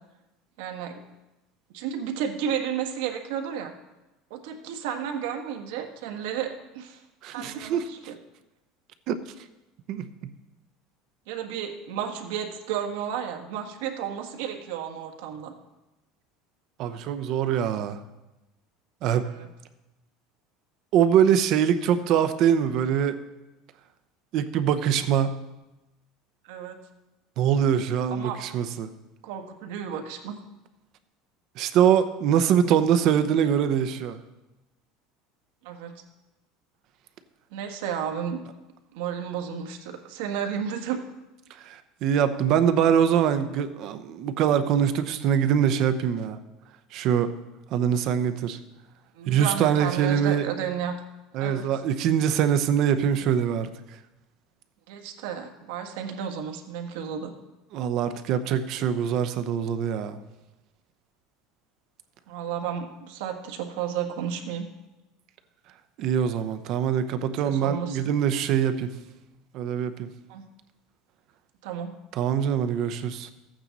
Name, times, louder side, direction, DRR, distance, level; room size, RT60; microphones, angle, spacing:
voice 1, 0.6-1.0 1.7-3.7 4.3-7.0 7.3-8.2 11.3-15.5 19.2-19.5 26.4-26.8 28.1-28.4 29.2-30.4 35.6-35.9 37.5-38.4 38.9-41.0 49.1-50.9 51.4-51.8 54.9-57.3 62.3-64.7 67.4-68.1 70.3-70.4 71.6-72.0, right 8 dB, 75° right, 4 dB, 1.4 m, -32 dB
voice 2, 7.2-7.9 9.1-9.2 9.9-10.0 16.8-18.0 19.0-19.2 20.9-23.2 24.3-25.4 27.4-28.9 31.6-34.2 41.6-46.4 46.9-47.3 47.7-48.6 49.3-50.4 51.3-53.7 57.7-60.2 66.0-68.9 69.5-70.1 72.2-73.3, right 8 dB, 45° right, 10 dB, 0.7 m, -23 dB
14.0 x 8.9 x 4.1 m, 1.0 s
cardioid pair, 165°, 0 cm